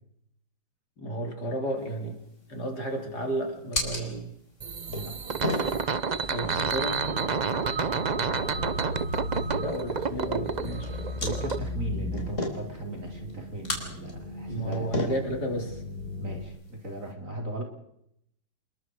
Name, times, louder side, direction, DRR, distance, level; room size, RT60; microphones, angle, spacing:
voice 1, 1.0-2.2 2.5-4.3 6.3-7.0 9.5-11.0 14.5-15.8, right 1 dB, 50° left, 3 dB, 4.3 m, -32 dB
sound 1, 1.8-17.1, left 2 dB, 35° left, 4.9 m, -38 dB
sound 2, 4.6-11.6, right 5 dB, 70° right, 0.4 m, -30 dB
sound 3, 6.4-16.5, left 1 dB, 80° left, 4.6 m, -37 dB
voice 2, 8.1-8.8 11.2-14.9 16.2-17.6, right 1 dB, 40° right, 2 dB, 4.5 m, -37 dB
28.5 x 22.5 x 4.9 m, 0.75 s
omnidirectional pair, 2.2 m